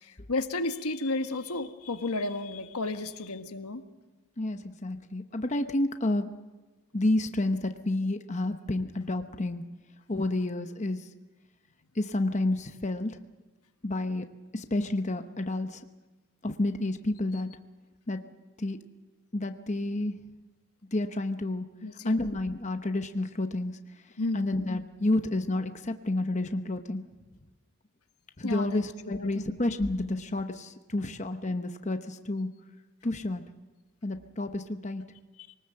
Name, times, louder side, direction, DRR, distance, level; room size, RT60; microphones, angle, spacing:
voice 1, 0.0-3.8 21.8-22.2 24.2-24.5 28.4-28.8 29.1-29.5, left 2 dB, 90° left, 7 dB, 1.5 m, -32 dB
voice 2, 4.4-6.3 6.9-9.6 10.1-11.1 11.9-13.2 13.8-14.3 14.5-15.8 16.4-17.5 18.1-18.2 18.6-18.8 19.3-20.2 20.9-21.7 22.0-23.8 24.3-27.0 28.4-32.5 33.0-33.4 34.0-35.0, left 2 dB, 30° left, 7 dB, 0.9 m, -30 dB
23.0 x 19.0 x 7.7 m, 1.2 s
head